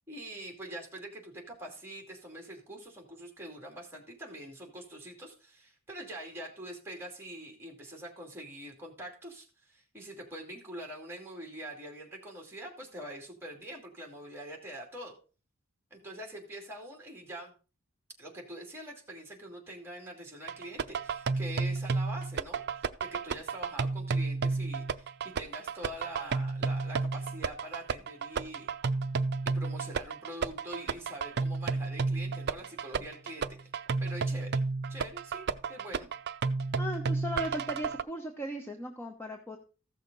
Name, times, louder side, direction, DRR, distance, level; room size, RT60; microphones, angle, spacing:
voice 1, 0.1-15.2 15.9-17.5 18.2-28.7 29.5-33.5 34.0-34.6 34.9-36.1, right 1 dB, 10° right, 1 dB, 2.4 m, -44 dB
sound 1, 20.5-38.0, right 4 dB, 50° right, 0.4 m, -32 dB
voice 2, 36.8-39.6, equal, 10° left, 3 dB, 0.9 m, -37 dB
14.5 x 6.5 x 4.0 m, 0.36 s
head